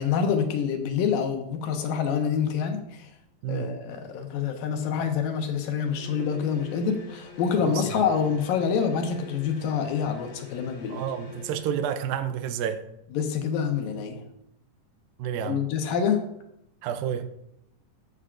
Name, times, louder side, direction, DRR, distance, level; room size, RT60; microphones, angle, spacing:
voice 1, 0.0-3.1 3.5-11.1 13.1-14.2 15.4-16.2, left 7 dB, 80° left, 2.7 m, -27 dB
voice 2, 3.4-3.8 7.6-8.0 10.9-12.8 15.2-15.6 16.8-17.3, right 9 dB, 90° right, 2.4 m, -30 dB
sound 1, 5.8-11.8, left 4 dB, 50° left, 2.7 m, -44 dB
13.5 x 8.1 x 2.5 m
omnidirectional pair, 4.0 m